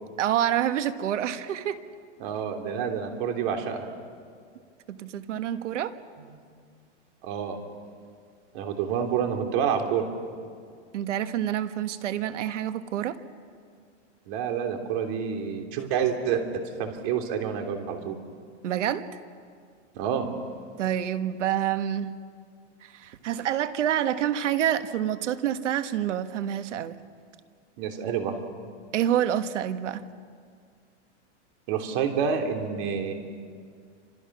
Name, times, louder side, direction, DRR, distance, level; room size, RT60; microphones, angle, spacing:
voice 1, 0.2-1.8 4.9-5.9 10.9-13.2 18.6-19.1 20.8-22.2 22.8-27.0 28.9-30.1, right 10 dB, 85° right, 9 dB, 1.6 m, -27 dB
voice 2, 2.2-3.9 6.2-6.3 7.2-7.6 8.5-10.1 14.3-16.4 16.8-18.1 19.9-20.3 27.8-28.4 31.7-33.1, right 7 dB, 45° right, 4 dB, 3.3 m, -28 dB
29.5 x 26.5 x 6.2 m, 2.1 s
supercardioid pair, 160°, 35 cm